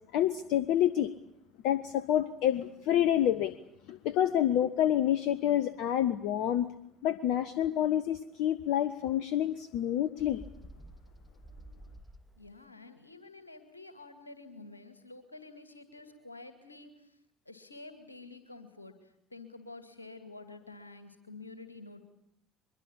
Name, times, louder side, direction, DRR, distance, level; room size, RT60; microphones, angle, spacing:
voice 1, 0.1-1.1 1.6-3.5 3.9-6.7 7.0-10.4, left 11 dB, 60° left, 15 dB, 0.9 m, -28 dB
Bird, 10.2-12.6, right 1 dB, ahead, 2.6 m, -51 dB
voice 2, 12.4-17.2 17.5-22.0, left 3 dB, 90° left, 9 dB, 2.2 m, -49 dB
23.5 x 22.0 x 8.7 m, 0.76 s
figure-of-eight pair, 60°, 0 cm